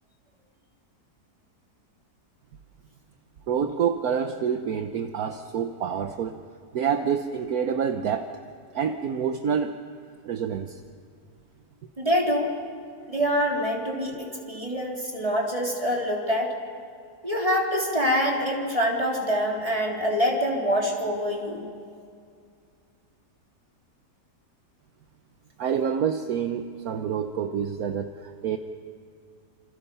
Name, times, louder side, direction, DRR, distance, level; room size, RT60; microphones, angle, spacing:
voice 1, 3.5-6.4 6.7-8.3 8.7-9.8 10.2-10.8 25.6-28.6, right 7 dB, 65° right, 7 dB, 1.3 m, -27 dB
voice 2, 12.0-12.5 13.1-16.5 17.2-21.7, equal, 20° right, -1 dB, 3.6 m, -25 dB
28.0 x 27.5 x 5.6 m, 2.3 s
omnidirectional pair, 1.8 m